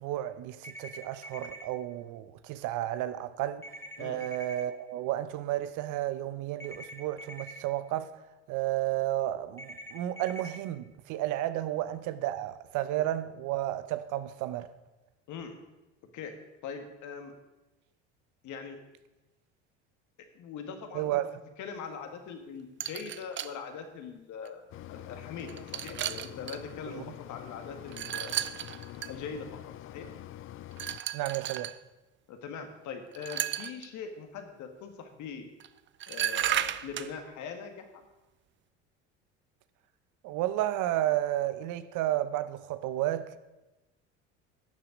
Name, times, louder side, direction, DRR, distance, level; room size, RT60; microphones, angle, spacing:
voice 1, 0.0-3.7 4.0-8.2 8.5-14.7 20.9-21.3 26.9-27.0 31.1-31.7 40.2-43.4, right 13 dB, 60° right, 0.8 m, -32 dB
sound 1, 0.6-1.6 3.6-4.6 6.6-7.6 9.6-10.6, equal, 5° left, 1.8 m, -45 dB
voice 2, 16.6-17.3 18.4-18.8 20.3-21.1 21.6-24.6 24.9-27.0 27.3-28.4 29.1-30.1 32.3-35.5 36.1-38.0, left 6 dB, 55° left, 1.9 m, -41 dB
sound 2, 22.8-23.5 24.4-24.5 25.4-26.6 27.9-29.1 30.8-31.8 33.1-33.9 35.6-35.7 36.0-37.1, right 11 dB, 35° right, 0.5 m, -33 dB
Mechanisms, 24.7-31.0, left 13 dB, 40° left, 0.4 m, -45 dB
11.5 x 6.9 x 5.2 m
hypercardioid pair, 75°, 34 cm